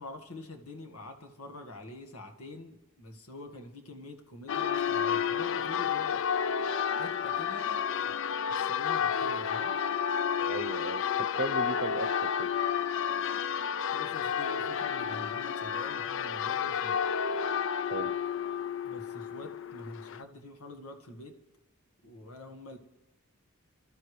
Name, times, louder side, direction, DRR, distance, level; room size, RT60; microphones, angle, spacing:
voice 1, 0.0-6.2 6.9-8.2 8.5-9.8 13.9-17.0 18.8-21.4 22.0-22.8, left 2 dB, 80° left, 1.7 m, -46 dB
Church bell, 4.5-20.2, left 7 dB, 60° left, 0.4 m, -31 dB
voice 2, 10.5-12.5 17.9-18.1, right 3 dB, 50° right, 0.7 m, -36 dB
26.5 x 13.0 x 3.3 m
head